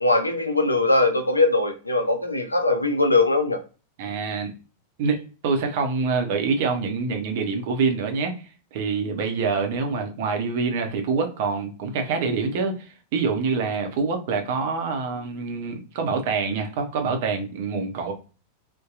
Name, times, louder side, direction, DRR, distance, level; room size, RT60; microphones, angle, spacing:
voice 1, 0.0-3.6, left 2 dB, 80° left, 6 dB, 0.4 m, -21 dB
voice 2, 4.0-4.5 5.0-8.4 8.7-18.1, right 4 dB, 50° right, 4 dB, 0.6 m, -26 dB
2.6 x 2.2 x 2.3 m, 0.35 s
figure-of-eight pair, 90°, 0 cm